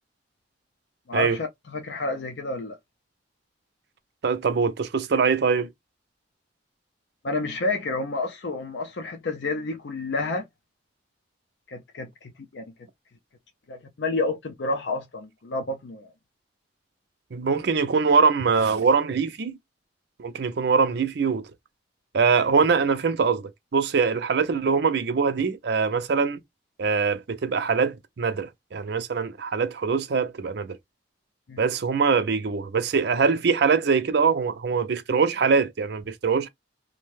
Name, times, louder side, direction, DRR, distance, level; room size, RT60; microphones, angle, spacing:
voice 1, 1.1-2.8 7.2-10.5 11.7-12.6 13.7-16.1 31.5-31.6, left 3 dB, 65° left, 0.5 m, -30 dB
voice 2, 4.2-5.7 17.3-19.6 20.2-21.5 22.1-26.4 26.8-30.8 31.6-36.5, right 5 dB, 60° right, 0.5 m, -23 dB
2.6 x 2.1 x 3.1 m
head